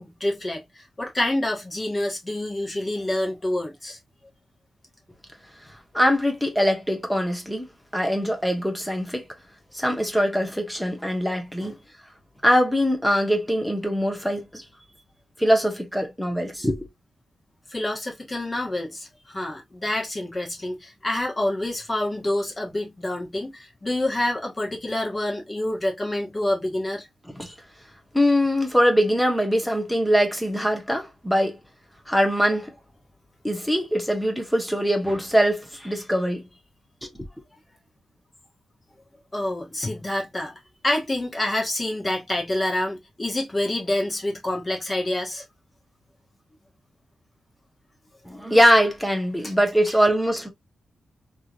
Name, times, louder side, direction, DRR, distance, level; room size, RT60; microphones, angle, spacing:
voice 1, 0.0-4.0 11.6-11.7 17.7-27.1 39.3-45.4 49.4-49.5 49.9-50.0, left 1 dB, 20° left, 1.6 m, -27 dB
voice 2, 5.9-7.7 7.9-9.2 9.7-11.8 12.4-14.6 15.4-16.9 27.3-27.5 28.1-31.6 32.1-32.7 33.4-36.5 37.0-37.1 48.2-50.5, equal, ahead, 1.2 m, -22 dB
3.6 x 3.1 x 2.5 m
wide cardioid pair, 115°, 0 cm